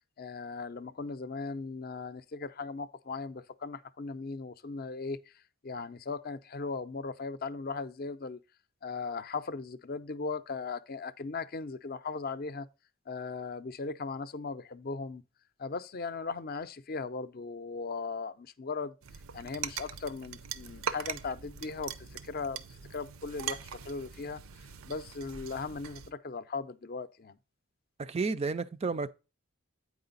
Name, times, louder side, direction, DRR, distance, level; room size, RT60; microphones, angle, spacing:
voice 1, 0.2-8.4 8.8-12.7 13.1-15.2 15.6-18.9 19.3-27.4, left 4 dB, 45° left, 0.5 m, -38 dB
sound 1, 19.0-26.1, right 8 dB, 75° right, 0.6 m, -41 dB
voice 2, 28.0-29.1, right 4 dB, 30° right, 0.3 m, -31 dB
8.7 x 4.8 x 3.9 m
head